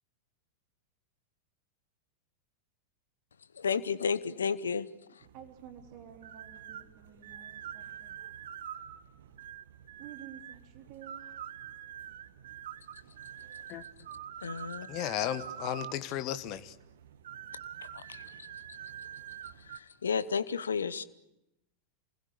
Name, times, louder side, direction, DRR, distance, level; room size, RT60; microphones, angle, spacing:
voice 1, 3.5-5.3 14.4-14.9 17.8-18.8 19.4-21.0, left 6 dB, 70° left, 17 dB, 0.9 m, -33 dB
sound 1, 5.2-19.8, right 9 dB, 60° right, 1.4 m, -46 dB
voice 2, 5.3-8.1 10.0-11.4, right 9 dB, 40° right, 5 dB, 3.4 m, -51 dB
voice 3, 14.9-16.8, left 11 dB, 40° left, 13 dB, 1.2 m, -34 dB
28.0 x 20.5 x 8.4 m, 0.89 s
figure-of-eight pair, 90°, 0 cm